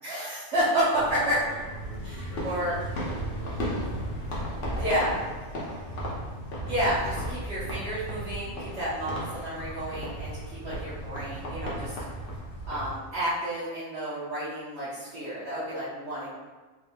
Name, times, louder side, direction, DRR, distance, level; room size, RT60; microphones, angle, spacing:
voice 1, 0.0-1.4 2.0-2.7 4.8-5.1 6.5-11.9 12.7-16.3, equal, 60° right, -14 dB, 1.3 m, -30 dB
sound 1, 0.9-12.9, equal, 50° left, 0.9 m, -35 dB
voice 2, 1.1-4.0 4.3-5.7, right 1 dB, 40° right, -11 dB, 1.6 m, -46 dB
3.5 x 3.4 x 2.3 m, 1.3 s
omnidirectional pair, 1.3 m